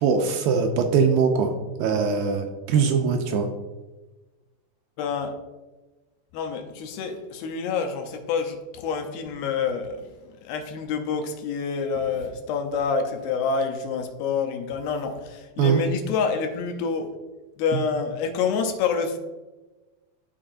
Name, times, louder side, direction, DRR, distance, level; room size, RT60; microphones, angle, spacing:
voice 1, 0.0-1.5 1.8-3.5 15.6-15.8 17.7-17.8, right 5 dB, 80° right, 4 dB, 2.2 m, -21 dB
voice 2, 5.0-5.4 6.3-17.1 17.6-19.2, left 5 dB, 80° left, 4 dB, 2.5 m, -27 dB
13.0 x 4.3 x 2.5 m, 1.2 s
omnidirectional pair, 4.5 m